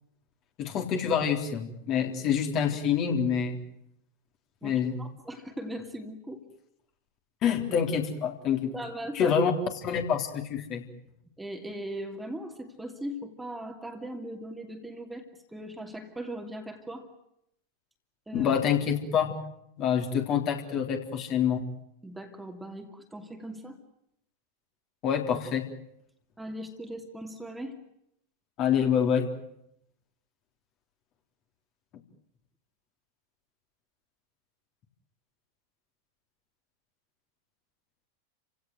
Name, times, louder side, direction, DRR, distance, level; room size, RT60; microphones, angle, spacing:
voice 1, 0.6-3.6 4.6-5.0 7.4-8.7 9.1-9.5 9.8-10.8 18.3-19.3 19.8-21.7 25.0-25.7 28.6-29.3, left 7 dB, 35° left, 4 dB, 3.7 m, -26 dB
voice 2, 4.6-6.4 8.7-9.4 11.4-15.3 15.5-17.1 18.3-18.5 22.0-23.8 26.4-27.8, right 1 dB, 5° right, 4 dB, 2.8 m, -39 dB
29.5 x 17.0 x 9.3 m, 0.77 s
figure-of-eight pair, 90°, 0 cm